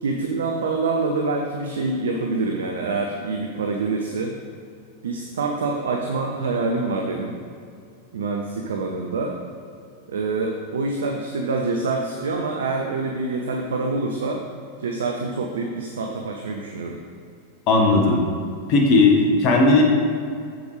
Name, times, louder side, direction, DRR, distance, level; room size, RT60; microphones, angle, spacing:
voice 1, 0.0-4.3 5.0-7.3 8.1-9.4 10.1-14.4 14.8-17.0, right 3 dB, 65° right, 2 dB, 0.5 m, -26 dB
voice 2, 17.7-18.2 18.7-19.8, left 3 dB, 40° left, 1 dB, 1.1 m, -16 dB
7.3 x 7.0 x 3.2 m, 2.4 s
figure-of-eight pair, 90°, 0 cm